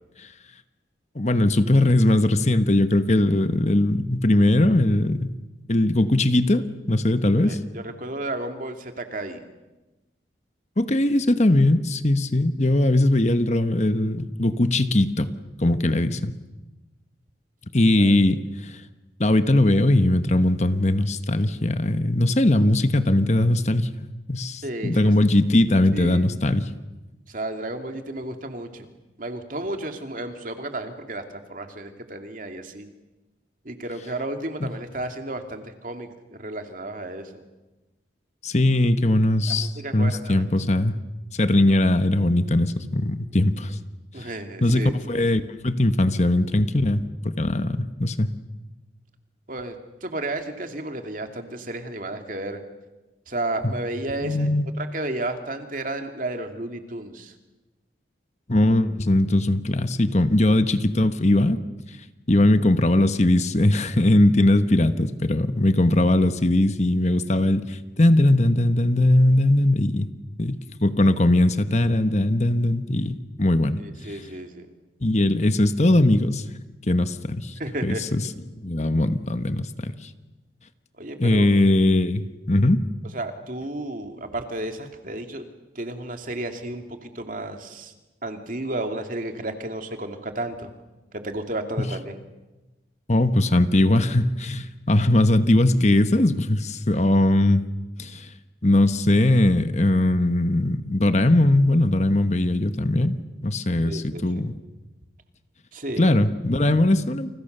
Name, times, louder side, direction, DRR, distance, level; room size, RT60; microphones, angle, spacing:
voice 1, 1.1-5.3 5.7-7.6 10.8-15.3 15.6-16.4 17.7-18.8 19.2-26.7 34.6-34.7 38.4-41.0 41.3-43.8 44.2-44.3 44.6-47.0 47.4-48.3 53.6-53.7 54.2-54.6 58.5-61.6 62.3-70.1 70.4-74.2 75.0-76.4 76.9-77.5 77.8-78.3 78.6-80.1 81.2-82.8 91.8-91.9 93.1-97.6 98.0-98.3 98.6-103.1 103.4-104.5 106.0-107.3, left 1 dB, 35° left, 10 dB, 1.2 m, -20 dB
voice 2, 7.4-9.4 18.0-18.2 24.6-25.1 25.9-26.3 27.3-28.9 29.2-32.9 33.6-36.1 36.4-37.4 39.5-40.4 44.1-45.2 49.5-49.8 50.0-52.6 53.3-54.5 54.8-57.3 73.8-74.7 77.6-78.0 81.0-81.5 83.1-85.4 85.7-87.9 88.2-90.7 91.1-92.2 103.8-104.2 105.7-106.1, right 1 dB, 45° right, 6 dB, 2.7 m, -32 dB
29.5 x 29.5 x 6.8 m, 1.1 s
head